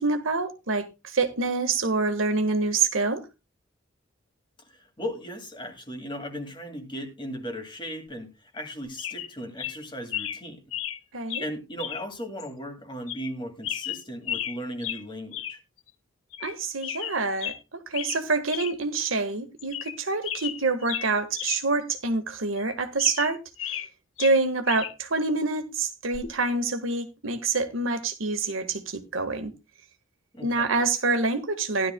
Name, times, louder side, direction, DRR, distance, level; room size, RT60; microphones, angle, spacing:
voice 1, 0.0-3.2 11.1-11.4 16.4-23.4 23.6-23.8 24.2-29.5 30.4-31.9, right 3 dB, 85° right, 1.5 m, -26 dB
voice 2, 4.6-10.6 11.4-15.6 30.3-30.7, equal, 25° left, 2.1 m, -37 dB
sound 1, 8.6-8.7 9.0-9.3 9.6-9.8 10.1-10.4 10.7-11.0 11.3-11.5 11.8-12.1 12.4-12.5 13.1-13.3 13.6-14.6 14.8-15.0 15.3-15.6 15.9-16.0 16.3-16.5 16.8-17.6 17.9-18.2 18.5-18.7 19.1-19.2 19.6-20.0 20.2-21.6 21.9-22.0 22.6-23.9 24.2-24.9 26.1-26.4, left 11 dB, 85° left, 0.8 m, -34 dB
15.5 x 11.5 x 2.2 m
head